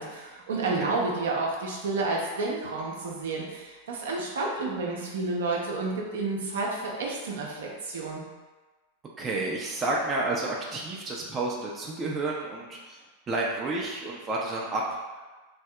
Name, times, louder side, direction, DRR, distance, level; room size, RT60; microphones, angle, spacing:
voice 1, 0.0-8.2, right 3 dB, 60° right, -2 dB, 0.7 m, -30 dB
voice 2, 9.2-15.0, right 2 dB, 20° right, -3 dB, 0.5 m, -30 dB
3.4 x 2.7 x 3.3 m, 1.2 s
figure-of-eight pair, 90°, 0 cm